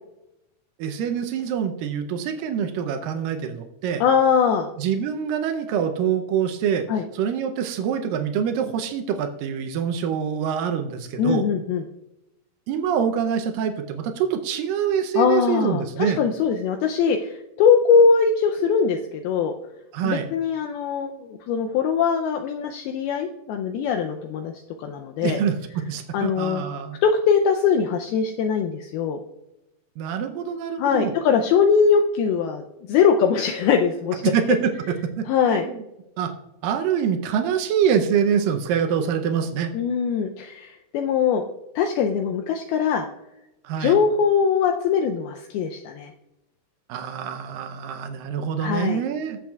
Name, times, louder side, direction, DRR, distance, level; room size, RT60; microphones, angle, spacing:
voice 1, 0.8-4.0 4.8-6.8 7.1-11.5 12.7-16.2 19.9-20.3 25.2-27.0 30.0-31.1 34.2-34.6 34.9-35.8 36.2-36.3 36.6-39.7 43.6-44.0 46.9-49.4, right 8 dB, 85° right, 5 dB, 2.0 m, -25 dB
voice 2, 4.0-4.7 6.9-7.0 11.2-11.8 15.2-19.5 20.0-24.5 24.8-25.4 26.1-26.6 27.0-29.2 30.8-32.6 32.9-34.2 35.3-35.7 39.7-41.4 41.8-43.1 43.8-46.1 48.6-49.0, left 6 dB, 80° left, 4 dB, 2.3 m, -21 dB
18.0 x 7.7 x 2.3 m, 0.90 s
omnidirectional pair, 4.8 m